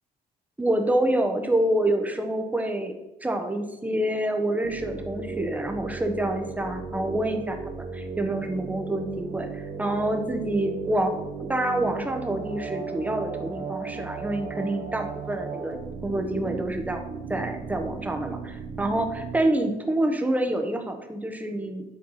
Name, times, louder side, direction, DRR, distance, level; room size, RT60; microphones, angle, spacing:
voice 1, 0.6-11.2 11.5-17.0 17.3-21.8, right 1 dB, 10° right, 4 dB, 1.2 m, -27 dB
sound 1, 4.6-19.4, right 5 dB, 60° right, 1.6 m, -36 dB
9.0 x 4.6 x 5.7 m, 0.97 s
cardioid pair, 110°, 17 cm